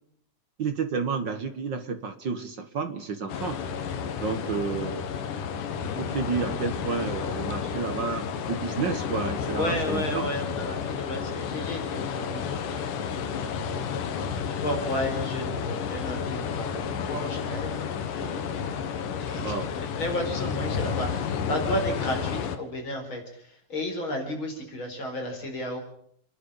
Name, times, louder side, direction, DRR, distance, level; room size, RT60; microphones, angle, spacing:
voice 1, 0.6-3.6 4.2-5.1 5.8-10.2 19.4-19.7 22.1-22.2, right 5 dB, 55° right, 8 dB, 1.3 m, -31 dB
sound 1, 3.3-22.6, left 7 dB, 80° left, 3.0 m, -31 dB
voice 2, 4.2-4.5 9.5-17.9 18.1-18.7 19.2-25.8, left 1 dB, 35° left, 3 dB, 5.0 m, -33 dB
29.5 x 11.0 x 8.5 m, 0.68 s
omnidirectional pair, 3.8 m